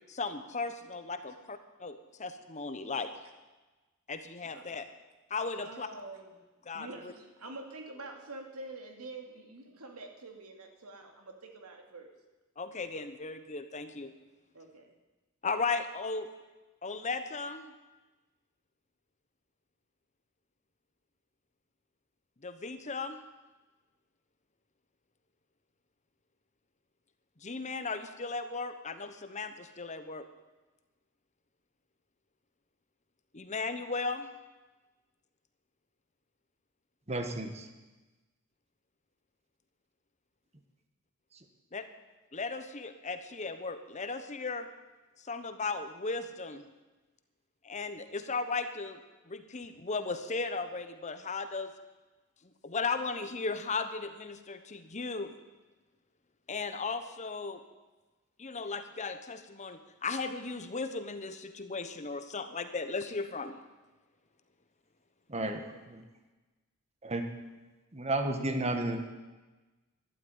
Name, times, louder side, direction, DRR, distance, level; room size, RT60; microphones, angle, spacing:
voice 1, 0.1-3.1 4.1-4.8 5.3-5.9 6.7-7.1 12.6-14.1 15.4-16.3 16.8-17.7 22.4-23.2 27.4-30.3 33.3-34.3 41.7-41.9 42.3-44.7 45.2-46.7 47.6-49.0 49.3-51.7 52.6-55.3 56.5-57.6 58.4-63.6, left 4 dB, 30° left, 9 dB, 1.0 m, -36 dB
voice 2, 5.6-6.4 6.7-12.1 14.5-14.9, right 2 dB, 85° right, 3 dB, 2.5 m, -46 dB
voice 3, 37.1-37.7 65.3-66.0 67.0-67.2 67.9-69.0, right 2 dB, 30° right, 5 dB, 1.6 m, -32 dB
12.5 x 12.0 x 9.5 m, 1.2 s
head